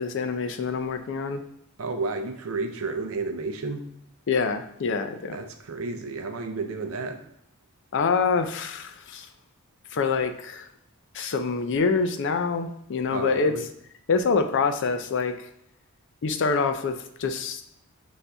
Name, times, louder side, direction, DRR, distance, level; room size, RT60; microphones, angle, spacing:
voice 1, 0.0-1.4 4.3-5.4 7.9-9.3 9.9-10.7 11.1-13.5 14.1-15.3 16.2-17.6, left 4 dB, 55° left, 8 dB, 0.4 m, -26 dB
voice 2, 1.8-3.9 5.3-7.2 13.1-13.7, right 3 dB, 65° right, 5 dB, 0.5 m, -31 dB
5.7 x 2.6 x 3.4 m, 0.73 s
head